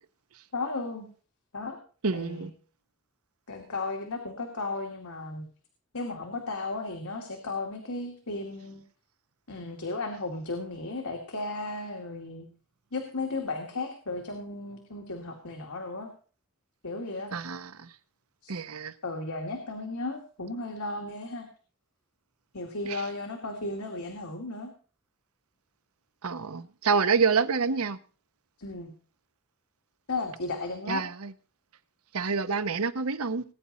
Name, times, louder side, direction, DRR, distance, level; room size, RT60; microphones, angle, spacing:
voice 1, 0.5-1.1 1.5-1.8 2.1-2.5 3.5-5.5 5.9-8.8 9.5-12.5 12.9-16.1 16.8-17.3 18.4-18.5 19.0-21.5 22.5-24.7 28.6-28.9 30.1-31.0, left 3 dB, 90° left, 2.4 m, -35 dB
voice 2, 2.0-2.5 17.3-17.9 18.5-18.9 22.9-23.0 26.2-28.0 30.9-31.3 32.1-33.4, right 5 dB, 85° right, 0.9 m, -27 dB
19.5 x 9.7 x 4.3 m
head